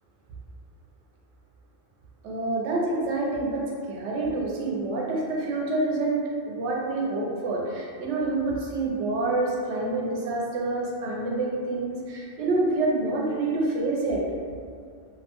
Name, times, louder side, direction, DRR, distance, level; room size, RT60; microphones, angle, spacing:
voice 1, 2.2-14.2, right 2 dB, 85° right, -2 dB, 0.9 m, -27 dB
2.5 x 2.1 x 2.9 m, 2.2 s
omnidirectional pair, 1.1 m